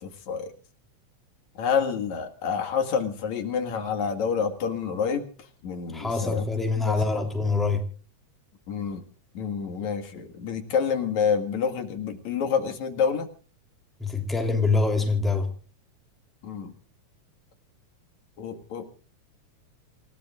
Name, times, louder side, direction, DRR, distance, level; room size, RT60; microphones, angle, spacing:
voice 1, 0.0-0.5 1.6-5.3 5.6-6.5 6.9-7.2 8.7-9.0 9.3-13.3 16.4-16.7 18.4-18.9, left 6 dB, 70° left, 7 dB, 3.1 m, -28 dB
voice 2, 5.9-7.8 14.0-15.5, left 3 dB, ahead, 4 dB, 2.9 m, -25 dB
27.5 x 17.0 x 2.4 m, 0.39 s
omnidirectional pair, 3.4 m